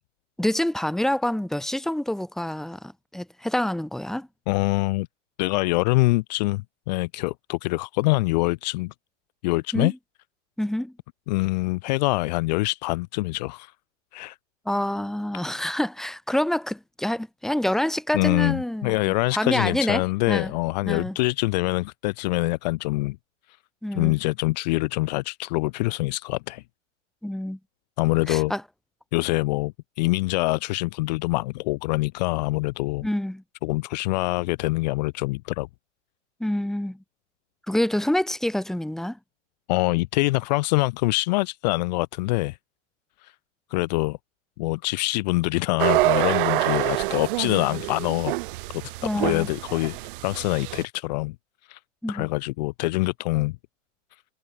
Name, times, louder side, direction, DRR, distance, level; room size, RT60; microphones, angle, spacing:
voice 1, 0.4-4.3 9.7-10.0 10.6-10.9 14.7-20.0 20.3-20.5 20.9-21.2 23.8-24.2 27.2-27.6 28.3-28.6 33.0-33.4 36.4-37.0 37.7-39.2 49.0-49.5 52.0-52.3, left 1 dB, ahead, 2.6 m, -27 dB
voice 2, 4.5-5.1 5.4-8.9 9.4-9.9 11.3-13.7 14.1-14.4 18.1-23.2 23.9-26.6 28.0-28.5 29.1-33.1 33.6-35.7 39.7-42.6 43.2-43.3 43.7-44.2 44.6-48.3 48.7-48.8 49.1-50.0 50.2-51.4 51.7-51.8 52.1-53.6, left 22 dB, 35° left, 0.9 m, -25 dB
sound 1, 45.8-50.8, right 20 dB, 45° right, 1.9 m, -26 dB
supercardioid pair, 165°, 38 cm